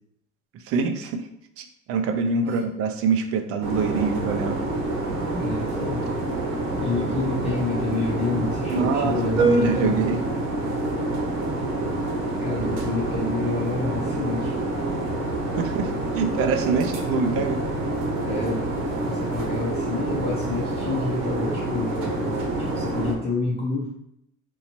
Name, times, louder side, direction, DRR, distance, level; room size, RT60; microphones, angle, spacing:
voice 1, 0.7-1.3 1.6-4.6 8.7-10.2 15.6-17.6, right 4 dB, 50° right, 7 dB, 0.4 m, -25 dB
sound 1, 3.6-23.1, right 2 dB, 85° right, 1.1 m, -27 dB
voice 2, 5.3-6.1 6.8-10.0 12.4-14.6 18.2-18.7 19.1-22.3 22.6-23.9, left 3 dB, 20° left, -6 dB, 0.6 m, -28 dB
4.2 x 2.7 x 2.9 m, 0.77 s
cardioid pair, 165°, 31 cm